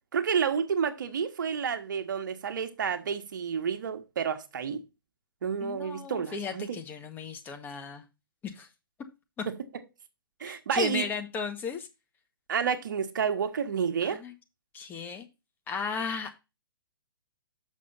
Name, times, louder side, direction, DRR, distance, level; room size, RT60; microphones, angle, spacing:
voice 1, 0.1-4.8 5.4-6.8 9.5-9.6 10.4-11.0 12.5-14.2, right 7 dB, 55° right, 1.4 m, -30 dB
voice 2, 5.6-8.0 8.4-8.7 9.4-9.5 10.4-11.9 14.0-14.3 14.7-15.3 15.7-16.3, left 5 dB, 15° left, 1.3 m, -35 dB
7.4 x 6.5 x 4.1 m
figure-of-eight pair, 125°, 12 cm